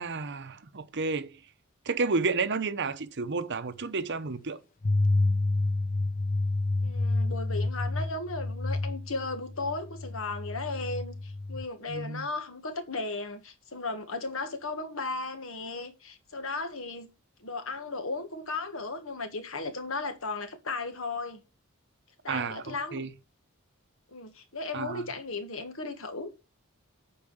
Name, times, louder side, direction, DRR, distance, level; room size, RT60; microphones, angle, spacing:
voice 1, 0.0-1.3 1.8-4.6 11.9-12.3 22.3-23.1 24.7-25.0, right 4 dB, 55° right, 0.9 m, -31 dB
sound 1, 4.8-11.6, left 2 dB, 40° left, 0.8 m, -29 dB
voice 2, 6.8-17.1 17.4-21.4 22.2-23.1 24.1-26.3, left 3 dB, 65° left, 1.8 m, -36 dB
8.6 x 5.1 x 7.8 m
head